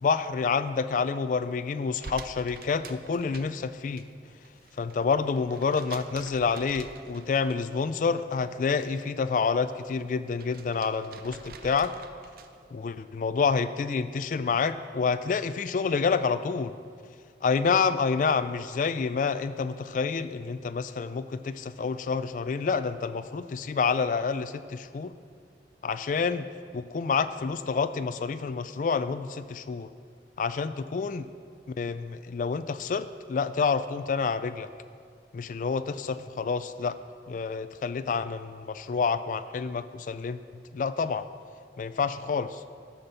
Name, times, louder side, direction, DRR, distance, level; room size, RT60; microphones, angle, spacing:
voice 1, 0.0-4.0 4.8-11.9 12.7-16.7 17.4-25.1 25.8-26.5 26.7-29.9 30.4-31.3 31.7-34.7 35.3-37.0 37.3-40.4 40.7-41.3 41.8-42.6, left 5 dB, 45° left, 11 dB, 0.3 m, -28 dB
sound 1, 2.0-4.0 4.3-7.8 8.2-9.1 9.5-12.7, right 4 dB, 55° right, 0.5 m, -47 dB
11.5 x 5.9 x 6.7 m, 2.2 s
head